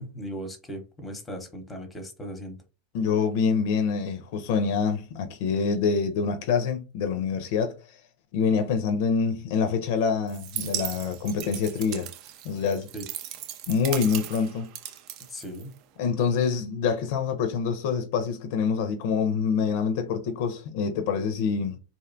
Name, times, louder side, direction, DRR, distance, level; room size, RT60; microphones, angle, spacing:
voice 1, 0.0-2.6 12.9-13.0 15.3-15.7, equal, 15° left, 0.7 m, -38 dB
voice 2, 2.9-8.0 8.3-12.1 12.4-12.9 13.7-14.7 16.0-21.8, left 5 dB, 65° left, 0.4 m, -26 dB
sound 1, 10.3-16.0, right 11 dB, 55° right, 0.3 m, -37 dB
2.6 x 2.1 x 2.5 m
hypercardioid pair, 100°, 0 cm